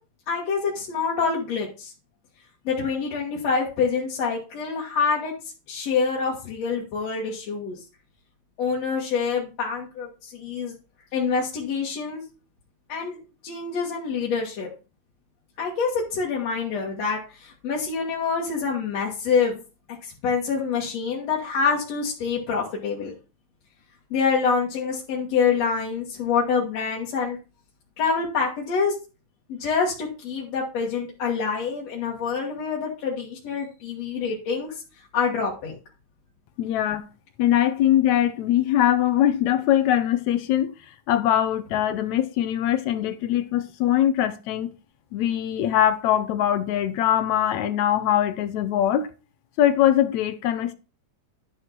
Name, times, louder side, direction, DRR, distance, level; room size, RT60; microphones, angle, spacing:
voice 1, 0.3-1.9 2.6-5.3 5.7-7.8 8.6-10.7 11.1-12.2 12.9-13.2 13.4-14.7 15.6-19.6 20.0-23.1 24.1-27.4 28.0-28.9 29.5-34.8 35.1-35.8, left 5 dB, 55° left, 2.8 m, -26 dB
voice 2, 36.6-37.1 37.4-40.7 41.1-44.7 45.1-49.1 49.6-50.7, left 11 dB, 70° left, 1.8 m, -22 dB
11.5 x 4.8 x 5.9 m
omnidirectional pair, 3.9 m